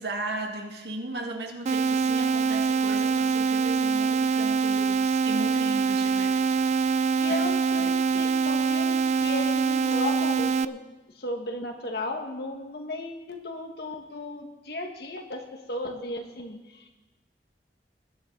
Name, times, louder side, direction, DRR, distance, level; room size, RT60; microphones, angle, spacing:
voice 1, 0.0-6.4 7.3-7.4 7.8-8.3, right 1 dB, 75° right, 2 dB, 1.9 m, -36 dB
sound 1, 1.7-10.7, right 5 dB, 40° right, 0.3 m, -24 dB
voice 2, 7.1-10.8 11.1-15.4 15.7-16.9, left 2 dB, 65° left, 3 dB, 1.8 m, -35 dB
20.0 x 9.7 x 4.0 m, 1.1 s
head